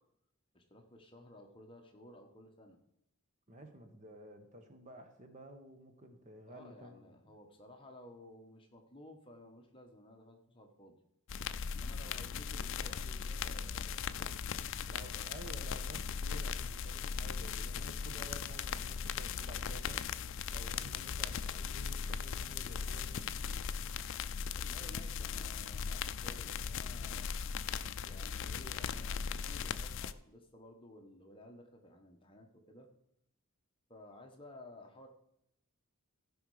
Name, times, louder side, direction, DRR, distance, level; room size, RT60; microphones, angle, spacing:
voice 1, 0.5-2.8 6.5-11.0 11.7-15.3 24.5-27.4 28.0-32.9 33.9-35.1, left 1 dB, 25° left, 3 dB, 1.2 m, -55 dB
voice 2, 3.5-7.2 12.1-12.3 14.9-20.0 20.5-23.6, right 1 dB, 35° right, 6 dB, 1.1 m, -52 dB
sound 1, 11.3-30.1, left 6 dB, 55° left, 0.4 m, -38 dB
15.5 x 5.5 x 4.8 m, 0.76 s
head